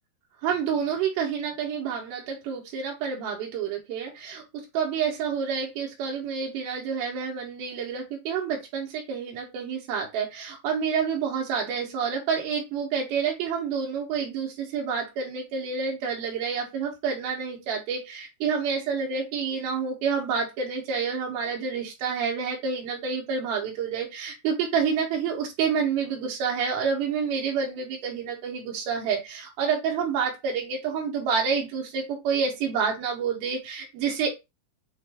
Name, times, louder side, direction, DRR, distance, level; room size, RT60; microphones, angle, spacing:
voice 1, 0.4-34.3, right 6 dB, 80° right, -1 dB, 1.9 m, -28 dB
6.3 x 2.2 x 3.3 m, 0.23 s
omnidirectional pair, 4.8 m